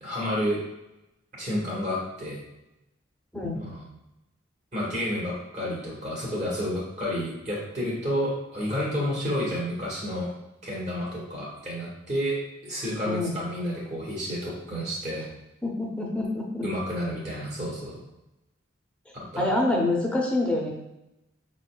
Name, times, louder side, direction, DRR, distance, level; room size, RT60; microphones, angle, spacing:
voice 1, 0.0-0.6 1.4-2.4 3.5-3.8 4.7-10.3 10.6-12.4 12.6-15.3 16.6-18.0 19.3-19.4, equal, 35° right, -5 dB, 1.7 m, -30 dB
voice 2, 3.3-3.6 13.0-13.4 15.6-16.7 19.4-20.7, left 2 dB, 5° left, -2 dB, 0.8 m, -26 dB
5.6 x 4.1 x 2.3 m, 0.92 s
head